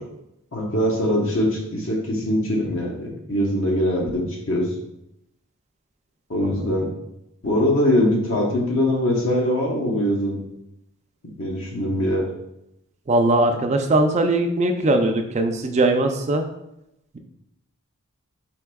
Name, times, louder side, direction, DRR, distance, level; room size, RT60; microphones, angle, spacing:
voice 1, 0.5-4.7 6.3-6.9 7.4-10.4 11.4-12.2, left 1 dB, 60° left, -1 dB, 0.9 m, -22 dB
voice 2, 13.1-16.5, right 2 dB, 30° right, 5 dB, 0.3 m, -20 dB
4.5 x 4.1 x 2.3 m, 0.84 s
head